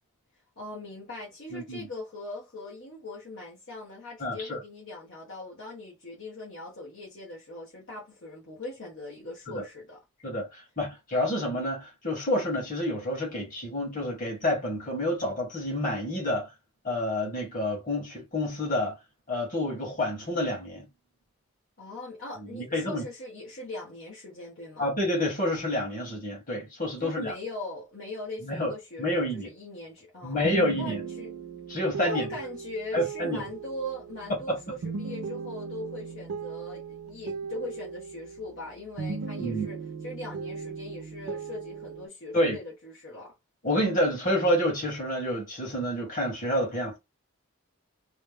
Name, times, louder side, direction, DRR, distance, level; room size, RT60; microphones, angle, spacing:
voice 1, 0.6-10.0 21.8-24.9 27.0-31.4 32.0-39.8 40.0-43.3, left 2 dB, 55° left, 1.0 m, -40 dB
voice 2, 1.5-1.9 4.2-4.6 9.5-9.6 10.2-16.5 16.8-19.0 19.3-20.9 22.4-23.0 24.8-27.3 28.4-28.7 29.0-29.5 30.2-31.0 31.7-32.3 32.9-33.4 34.5-34.6 39.4-39.7 42.3-42.6 43.6-47.0, left 1 dB, 35° left, 1.6 m, -28 dB
sound 1, 30.4-38.7 39.0-42.1, right 5 dB, 80° right, 0.5 m, -37 dB
3.2 x 2.1 x 3.4 m
head